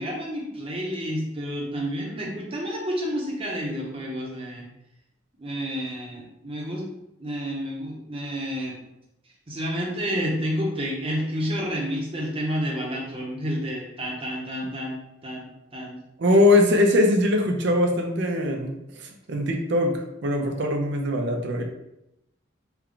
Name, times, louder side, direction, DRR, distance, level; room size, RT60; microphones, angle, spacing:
voice 1, 0.0-4.6 5.3-6.9 7.2-8.8 9.5-16.0, equal, 30° right, -2 dB, 0.8 m, -30 dB
voice 2, 16.2-21.6, left 1 dB, 60° right, 3 dB, 0.5 m, -22 dB
3.4 x 2.3 x 3.7 m, 0.85 s
head